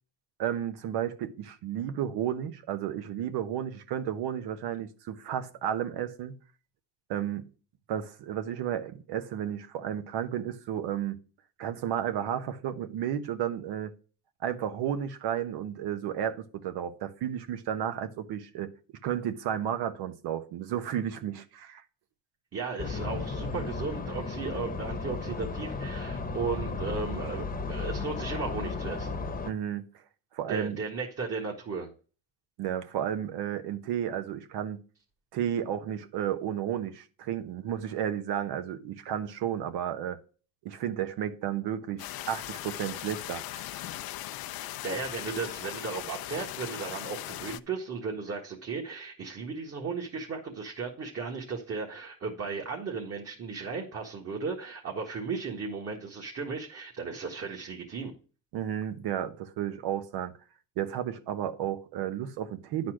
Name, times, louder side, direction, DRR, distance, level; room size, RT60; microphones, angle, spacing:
voice 1, 0.4-6.3 7.1-7.5 7.9-11.2 11.6-13.9 14.4-18.7 19.0-21.8 29.4-29.8 30.3-30.8 32.6-34.8 35.3-40.2 40.6-43.7 58.5-60.3 60.8-62.9, right 10 dB, 80° right, 1.2 m, -32 dB
voice 2, 22.5-29.2 30.5-31.9 44.6-58.1, right 4 dB, 35° right, 1.6 m, -35 dB
sound 1, 22.8-29.5, left 4 dB, 20° left, 1.0 m, -34 dB
sound 2, 42.0-47.6, left 15 dB, 65° left, 0.6 m, -39 dB
9.9 x 4.2 x 6.3 m
cardioid pair, 115°, 39 cm